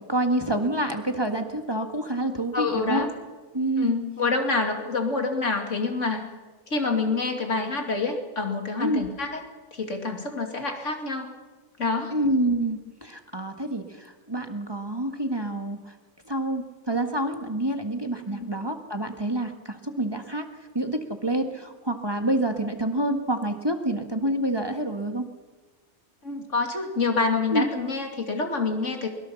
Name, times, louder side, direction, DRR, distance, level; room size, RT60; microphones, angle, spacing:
voice 1, 0.0-3.1 3.5-3.9 8.8-9.0 12.1-15.9 16.3-20.5 20.7-25.3 27.5-27.7, right 1 dB, 20° right, 5 dB, 1.7 m, -27 dB
voice 2, 2.5-3.1 3.8-6.3 6.7-9.4 9.7-11.4 11.8-12.1 18.3-18.5 26.2-29.1, left 3 dB, 70° left, 4 dB, 3.0 m, -27 dB
23.5 x 22.0 x 7.1 m, 1.3 s
omnidirectional pair, 1.3 m